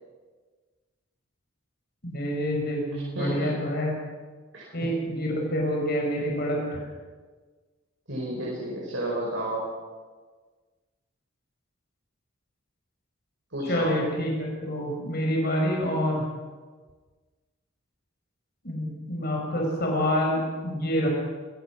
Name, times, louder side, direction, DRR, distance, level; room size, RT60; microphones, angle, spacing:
voice 1, 2.0-4.0 4.7-6.8 13.6-16.2 18.6-21.1, equal, 50° left, -1 dB, 5.8 m, -27 dB
voice 2, 2.9-3.7 4.5-4.7 8.1-9.6 13.5-13.9, right 1 dB, 75° right, -4 dB, 5.6 m, -32 dB
25.5 x 16.0 x 6.3 m, 1.4 s
head